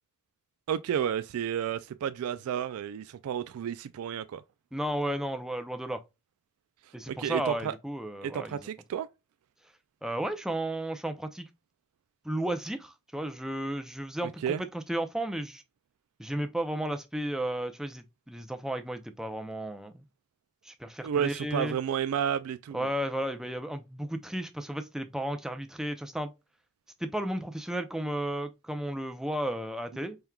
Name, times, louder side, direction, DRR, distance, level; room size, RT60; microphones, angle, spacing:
voice 1, 0.7-4.4 7.1-7.7 8.2-9.1 14.4-14.6 21.0-22.9, right 9 dB, 85° right, 0.3 m, -31 dB
voice 2, 4.7-6.0 6.9-8.6 10.0-11.5 12.2-15.6 16.2-20.0 20.6-21.8 22.7-26.3 27.0-30.2, right 1 dB, ahead, 0.4 m, -33 dB
4.4 x 3.5 x 2.2 m
head